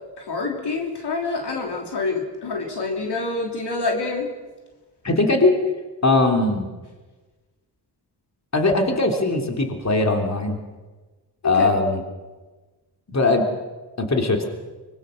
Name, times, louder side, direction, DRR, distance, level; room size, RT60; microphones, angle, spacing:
voice 1, 0.0-4.3 11.4-11.8, left 3 dB, 70° left, 1 dB, 3.3 m, -27 dB
voice 2, 5.0-5.6 6.0-6.7 8.5-10.6 11.4-12.0 13.1-13.5 14.0-14.5, left 2 dB, 40° left, 3 dB, 3.4 m, -20 dB
23.5 x 21.0 x 6.5 m, 1.3 s
cardioid pair, 45°, 42 cm